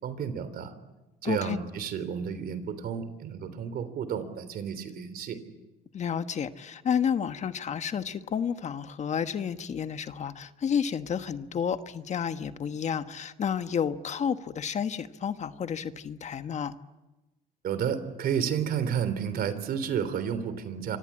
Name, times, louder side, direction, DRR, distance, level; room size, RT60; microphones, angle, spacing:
voice 1, 0.0-0.7 1.2-5.4 17.6-21.0, right 8 dB, 65° right, 13 dB, 3.5 m, -31 dB
voice 2, 1.2-1.6 5.9-16.7, left 7 dB, 45° left, 10 dB, 1.3 m, -31 dB
26.0 x 24.5 x 8.7 m, 1.1 s
cardioid pair, 110°, 17 cm